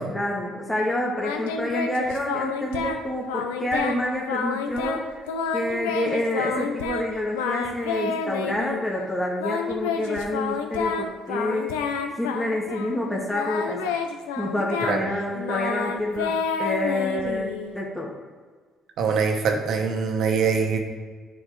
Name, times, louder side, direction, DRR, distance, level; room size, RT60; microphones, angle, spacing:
voice 1, 0.1-5.0 5.5-11.7 12.2-14.0 14.4-18.1, left 1 dB, 10° left, -3 dB, 1.6 m, -28 dB
Singing, 1.2-3.0 3.3-4.0 4.3-7.0 7.3-8.8 9.4-13.0 13.3-17.7, left 5 dB, 85° left, 0.6 m, -29 dB
voice 2, 19.0-20.8, right 5 dB, 65° right, 3 dB, 1.2 m, -23 dB
9.7 x 4.8 x 3.3 m, 1.5 s
hypercardioid pair, 50°, 0 cm